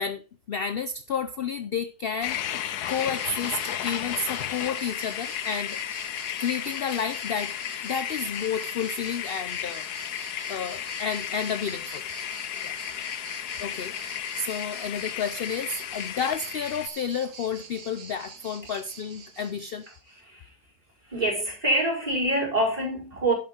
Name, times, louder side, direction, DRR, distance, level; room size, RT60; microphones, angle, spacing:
voice 1, 0.0-2.4 2.9-5.8 6.4-7.6 7.8-9.9 10.5-12.0 12.6-12.8 13.6-13.9 14.3-19.9, left 6 dB, 65° left, 0.5 m, -31 dB
sound 1, 2.2-16.9, left 11 dB, 90° left, 1.3 m, -34 dB
sound 2, 2.8-20.2, right 5 dB, 80° right, 2.0 m, -45 dB
voice 2, 21.1-23.3, right 1 dB, 25° right, 5.2 m, -25 dB
11.0 x 8.1 x 4.3 m
omnidirectional pair, 1.6 m